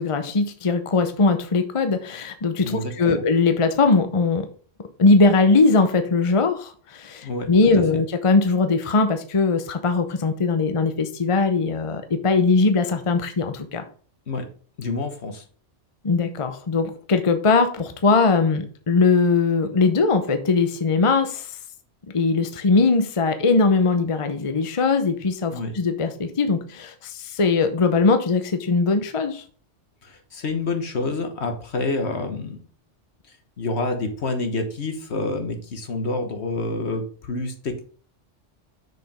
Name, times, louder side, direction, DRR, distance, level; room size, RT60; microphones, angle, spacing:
voice 1, 0.0-4.5 5.0-13.8 16.0-21.5 22.1-29.4, left 4 dB, 30° left, 8 dB, 0.8 m, -20 dB
voice 2, 2.6-3.2 7.2-7.5 7.7-8.0 14.3-14.5 14.8-15.4 25.5-25.7 30.0-32.6 33.3-37.8, left 2 dB, 65° left, 6 dB, 1.5 m, -28 dB
6.4 x 5.0 x 5.1 m, 0.43 s
omnidirectional pair, 1.2 m